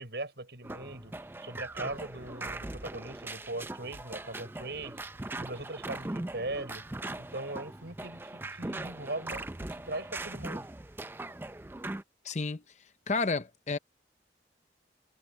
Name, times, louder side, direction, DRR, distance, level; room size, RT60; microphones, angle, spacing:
voice 1, 0.0-5.1 5.4-6.8 7.2-10.7, right 2 dB, 70° right, 5.8 m, -40 dB
sound 1, 0.6-12.0, right 2 dB, 10° right, 0.4 m, -40 dB
voice 2, 12.2-12.6 13.1-13.8, left 4 dB, 40° left, 0.7 m, -30 dB
head